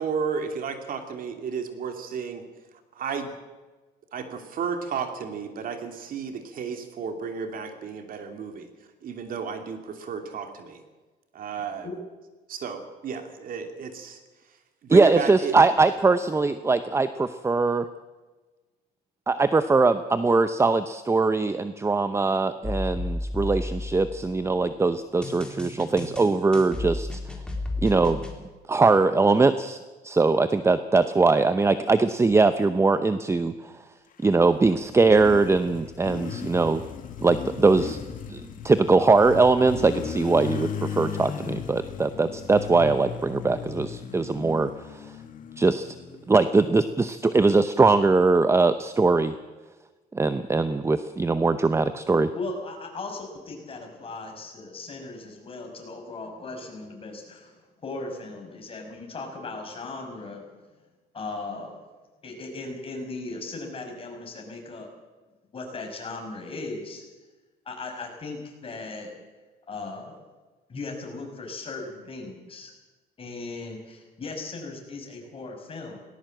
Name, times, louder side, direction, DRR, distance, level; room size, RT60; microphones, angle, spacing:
voice 1, 0.0-2.4 2.9-3.3 4.1-8.7 9.0-10.8 11.3-11.9 12.5-14.2 14.9-15.6, right 6 dB, 55° right, 6 dB, 2.8 m, -33 dB
voice 2, 14.9-17.9 19.3-27.2 27.8-28.2 28.7-29.8 30.0-33.7 34.2-36.8 37.2-38.0 38.3-45.0 45.6-45.9 46.3-49.3 50.1-52.3, right 3 dB, 15° right, 12 dB, 0.7 m, -21 dB
sound 1, 22.6-24.5 25.2-28.3, left 2 dB, 5° left, 3.8 m, -32 dB
Motorcycle, 34.2-46.9, left 7 dB, 55° left, 2.3 m, -37 dB
voice 3, 52.3-60.4 61.1-61.7 62.2-64.9 65.5-67.0 67.7-69.1 69.7-70.2 70.7-72.7 73.2-76.0, left 3 dB, 35° left, 2 dB, 6.2 m, -37 dB
19.0 x 18.5 x 7.9 m, 1.3 s
cardioid pair, 110°, 17 cm